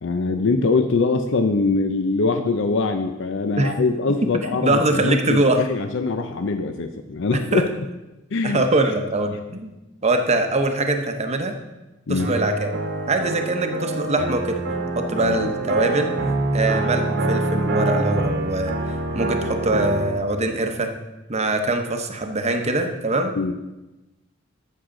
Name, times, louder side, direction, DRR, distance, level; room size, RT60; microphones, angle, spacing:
voice 1, 0.0-7.7 8.3-8.6 12.1-12.3 15.2-15.5 23.4-23.5, left 3 dB, 65° left, 7 dB, 0.6 m, -23 dB
voice 2, 4.6-5.6 7.5-7.7 8.4-9.7 10.0-11.5 12.1-12.7 13.1-14.6 15.0-16.1 16.5-18.7 19.1-20.9 21.3-23.3, right 2 dB, 35° right, 5 dB, 0.9 m, -22 dB
sound 1, 12.2-20.2, right 2 dB, 60° right, 1.2 m, -25 dB
14.0 x 6.4 x 3.8 m, 1.0 s
head